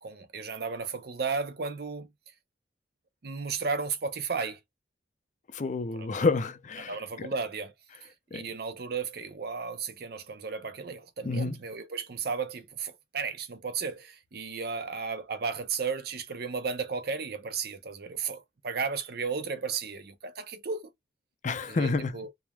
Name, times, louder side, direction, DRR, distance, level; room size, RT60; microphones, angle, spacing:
voice 1, 0.0-2.1 3.2-4.6 5.9-6.1 6.8-7.7 8.0-20.9 21.7-22.3, right 5 dB, 60° right, 0.6 m, -34 dB
voice 2, 5.5-7.0 8.3-8.4 11.2-11.5 21.4-22.1, left 3 dB, 40° left, 0.5 m, -28 dB
3.1 x 2.1 x 2.3 m
head